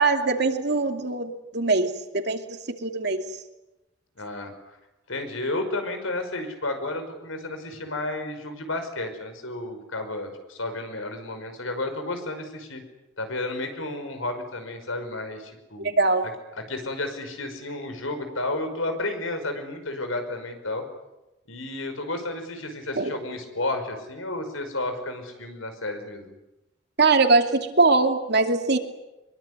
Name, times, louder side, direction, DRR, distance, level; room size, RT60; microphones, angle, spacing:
voice 1, 0.0-1.9 2.3-2.4 2.8-3.2 15.8-16.2 23.0-23.1 27.0-28.8, right 3 dB, 55° right, 5 dB, 2.7 m, -21 dB
voice 2, 4.2-4.5 5.1-12.8 13.2-15.9 16.7-20.9 21.5-26.3, left 2 dB, 85° left, 7 dB, 5.7 m, -32 dB
24.0 x 22.5 x 9.8 m, 0.99 s
head